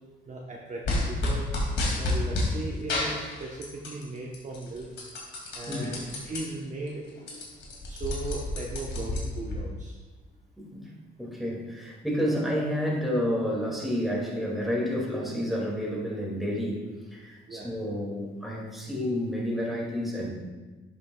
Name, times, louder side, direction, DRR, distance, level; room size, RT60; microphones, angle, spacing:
voice 1, 0.3-1.5 2.0-4.9 5.5-6.0 6.3-7.0 7.9-9.9 12.2-12.4 17.5-17.7, right 3 dB, 40° right, -2 dB, 1.0 m, -37 dB
sound 1, 0.8-2.5 2.9-4.0 4.3-6.4 6.8-6.9 7.1-9.6, left 2 dB, 65° left, 2.4 m, -29 dB
voice 2, 10.6-10.9 11.2-16.8 17.1-20.3, equal, ahead, -3 dB, 2.3 m, -30 dB
10.5 x 7.0 x 2.3 m, 1.3 s
cardioid pair, 90°, 20 cm